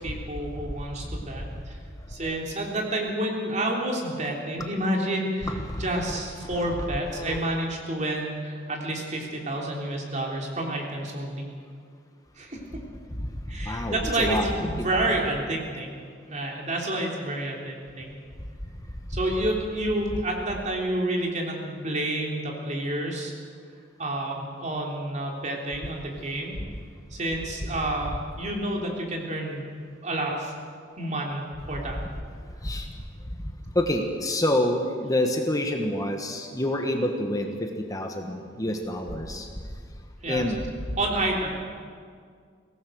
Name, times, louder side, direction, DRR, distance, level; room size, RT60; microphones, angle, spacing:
voice 1, 0.0-1.8 2.1-11.4 12.4-12.6 13.5-16.0 16.3-18.2 19.1-23.3 24.0-26.6 27.1-29.7 30.0-30.5 31.0-32.0 40.2-40.5 41.0-41.5, right 1 dB, 40° right, 0 dB, 3.5 m, -29 dB
voice 2, 5.5-6.2 6.4-6.6 7.1-7.4 13.6-14.5 32.6-32.8 33.7-37.5 37.9-39.5 40.3-40.6, left 1 dB, 20° left, 3 dB, 1.5 m, -27 dB
23.5 x 17.5 x 6.5 m, 2.1 s
head